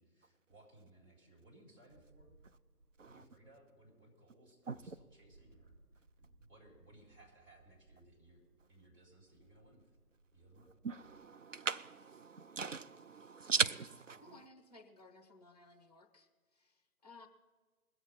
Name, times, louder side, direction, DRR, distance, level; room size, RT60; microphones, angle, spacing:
voice 1, 0.0-2.3 3.0-5.8 6.2-10.0 10.3-10.7, right 1 dB, 35° right, 3.8 m, -63 dB
sound 1, 1.9-11.2, right 2 dB, 75° right, 1.3 m, -67 dB
voice 2, 4.7-5.0 10.6-14.4, right 5 dB, 55° right, 0.5 m, -38 dB
voice 3, 14.2-17.3, left 3 dB, 25° left, 0.9 m, -59 dB
20.5 x 7.5 x 5.4 m
figure-of-eight pair, 155°, 46 cm